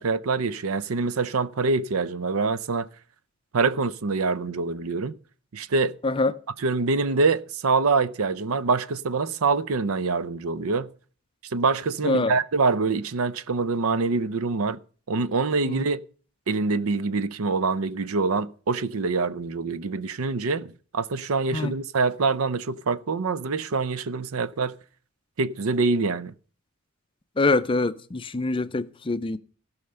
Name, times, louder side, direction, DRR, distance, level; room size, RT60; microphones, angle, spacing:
voice 1, 0.0-2.9 3.5-5.2 5.5-6.0 6.6-10.9 11.4-14.8 15.1-16.0 16.5-24.8 25.4-26.3, right 4 dB, 70° right, 0.6 m, -25 dB
voice 2, 12.0-12.4 15.7-15.8 21.5-21.7 27.4-29.4, left 3 dB, 25° left, 0.4 m, -24 dB
16.0 x 5.7 x 6.6 m
head